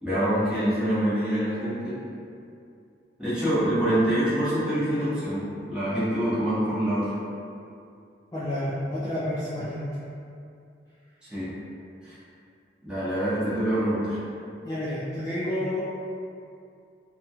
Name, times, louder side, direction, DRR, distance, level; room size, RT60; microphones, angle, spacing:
voice 1, 0.0-2.0 3.2-7.1 11.2-11.5 12.0-12.2 12.8-14.2, right 1 dB, 5° right, -13 dB, 0.8 m, -25 dB
voice 2, 8.3-10.0 14.6-15.8, left 1 dB, 15° left, -11 dB, 0.3 m, -30 dB
2.8 x 2.3 x 2.7 m, 2.5 s
head